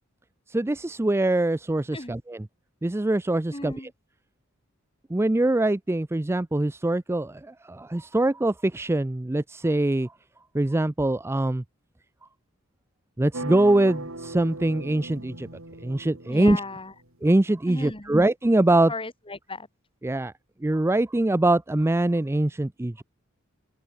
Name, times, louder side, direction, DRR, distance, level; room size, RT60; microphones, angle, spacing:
voice 1, 0.5-2.5 2.8-3.7 5.1-10.1 10.5-11.6 13.2-15.5 15.8-16.6 17.2-18.9 20.0-20.3 20.6-23.0, right 1 dB, 10° right, 0.4 m, -23 dB
voice 2, 3.5-3.9 16.3-16.9 17.7-18.2 18.9-19.7, left 2 dB, 25° left, 4.4 m, -36 dB
sound 1, 13.3-17.1, right 2 dB, 70° right, 5.8 m, -38 dB
open air
head